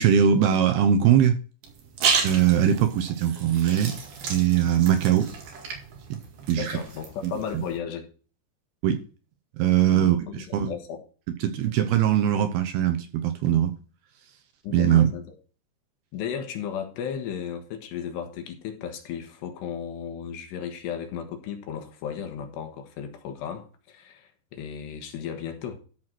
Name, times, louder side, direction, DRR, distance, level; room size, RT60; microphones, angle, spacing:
voice 1, 0.0-1.4 2.2-4.0 4.3-5.3 6.5-6.7 7.2-7.6 8.8-9.0 9.6-10.7 11.4-13.7 14.7-15.1, right 9 dB, 75° right, 2.5 m, -21 dB
sound 1, 1.6-7.8, right 6 dB, 60° right, 3.8 m, -32 dB
voice 2, 6.6-8.1 9.9-11.0 14.6-15.4 16.1-25.8, left 8 dB, 75° left, 3.5 m, -35 dB
13.5 x 4.7 x 6.0 m
omnidirectional pair, 5.2 m